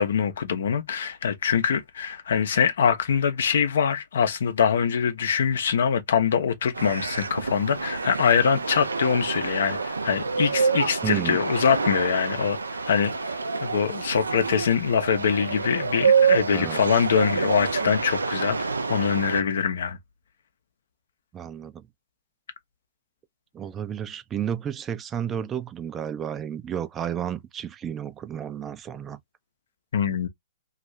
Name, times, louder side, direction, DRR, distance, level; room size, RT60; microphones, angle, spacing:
voice 1, 0.0-12.6 12.9-13.1 13.6-20.0 29.9-30.3, left 7 dB, 65° left, 0.7 m, -24 dB
sound 1, 6.7-19.4, right 5 dB, 90° right, 0.4 m, -27 dB
voice 2, 11.0-11.4 16.5-16.8 21.3-21.9 23.5-29.2, right 9 dB, 20° right, 0.4 m, -32 dB
2.6 x 2.4 x 3.1 m
hypercardioid pair, 120°, 0 cm